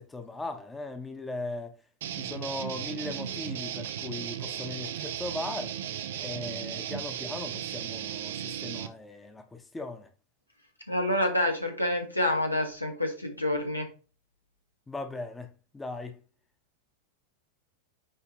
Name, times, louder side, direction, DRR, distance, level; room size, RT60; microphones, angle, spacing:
voice 1, 0.0-1.7 2.1-5.7 6.2-10.1 14.9-16.2, left 2 dB, 10° left, 1.0 m, -38 dB
sound 1, 2.0-8.9, right 10 dB, 60° right, 0.6 m, -36 dB
voice 2, 10.9-13.9, left 1 dB, 90° left, 1.4 m, -28 dB
9.4 x 3.3 x 3.1 m
figure-of-eight pair, 90°, 0 cm